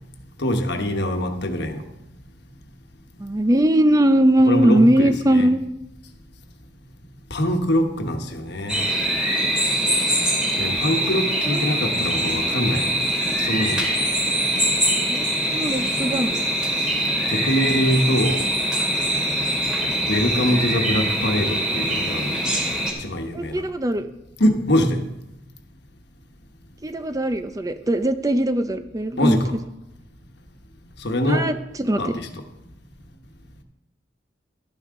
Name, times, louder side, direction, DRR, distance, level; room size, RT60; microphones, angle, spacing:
voice 1, 0.4-1.8 4.5-5.5 7.3-8.8 10.6-12.9 13.4-13.9 17.3-18.4 20.1-22.4 23.0-23.6 24.4-25.0 29.2-29.5 31.0-31.5 32.0-32.3, equal, 65° left, 1.2 m, -23 dB
voice 2, 3.2-5.6 11.0-11.1 11.4-11.6 15.0-16.4 23.3-24.1 26.8-29.4 31.3-32.2, right 1 dB, 20° right, 0.5 m, -20 dB
sound 1, 8.7-22.9, right 1 dB, 5° right, 2.9 m, -23 dB
12.5 x 9.6 x 3.7 m
head